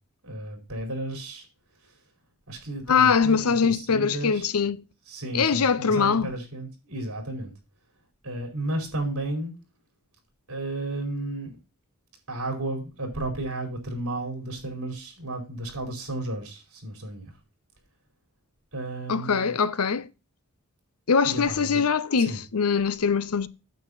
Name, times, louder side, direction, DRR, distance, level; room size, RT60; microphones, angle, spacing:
voice 1, 0.2-1.4 1.8-1.9 2.5-4.5 5.1-7.5 8.2-9.5 10.5-11.6 12.3-17.3 18.7-19.6 21.2-21.8 22.2-22.4, right 1 dB, 70° right, 4.6 m, -33 dB
voice 2, 2.9-4.8 5.3-6.3 19.1-20.1 21.1-23.5, left 5 dB, 80° left, 0.7 m, -22 dB
9.2 x 7.7 x 4.1 m
head